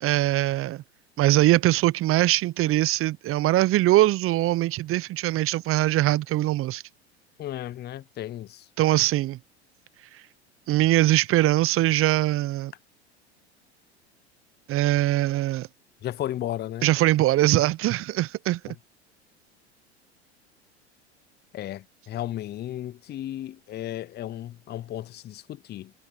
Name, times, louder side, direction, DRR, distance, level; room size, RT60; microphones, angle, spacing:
voice 1, 0.0-0.8 1.2-6.8 8.8-9.4 10.7-12.7 14.7-15.7 16.8-18.7, right 16 dB, 40° right, 0.9 m, -22 dB
voice 2, 7.4-8.6 16.0-16.9 21.5-25.9, left 13 dB, 30° left, 0.7 m, -34 dB
hypercardioid pair, 80°, 33 cm